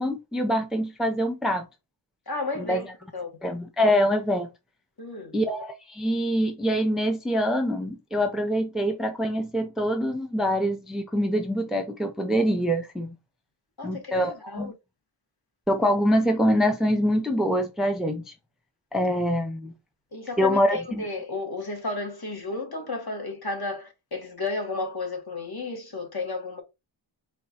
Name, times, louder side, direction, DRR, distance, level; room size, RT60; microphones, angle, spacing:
voice 1, 0.0-1.7 2.6-2.8 3.4-4.5 5.3-13.2 13.8-14.7 15.7-18.3 18.9-19.7 20.4-21.0, equal, ahead, 0.5 m, -25 dB
voice 2, 2.3-3.4 5.0-5.3 13.8-14.8 20.1-26.6, left 3 dB, 50° left, 1.4 m, -33 dB
4.4 x 2.3 x 4.0 m
wide cardioid pair, 100°, 48 cm